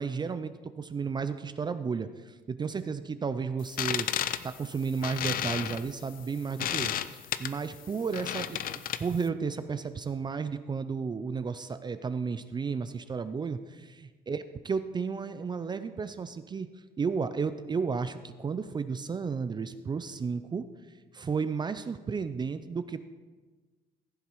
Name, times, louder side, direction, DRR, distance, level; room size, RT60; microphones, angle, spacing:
voice 1, 0.0-4.1 4.4-8.6 9.0-16.7 17.0-20.6 21.1-23.0, right 5 dB, 25° right, 11 dB, 0.5 m, -33 dB
sound 1, 3.6-9.3, left 11 dB, 55° left, 0.5 m, -33 dB
15.5 x 7.2 x 4.7 m, 1.3 s
cardioid pair, 110°, 17 cm